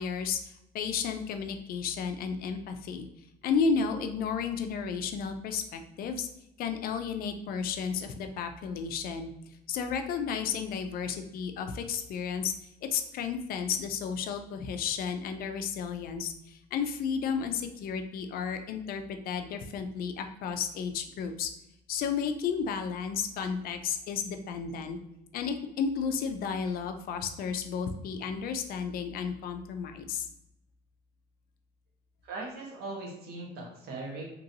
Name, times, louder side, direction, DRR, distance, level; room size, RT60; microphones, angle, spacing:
voice 1, 0.0-3.1 3.4-6.3 6.6-9.3 9.7-12.5 12.9-21.5 21.9-25.0 25.3-30.3, left 6 dB, 60° left, 7 dB, 0.4 m, -32 dB
voice 2, 32.2-34.2, right 2 dB, 70° right, -2 dB, 1.0 m, -39 dB
2.9 x 2.6 x 2.7 m, 0.84 s
cardioid pair, 110°, 17 cm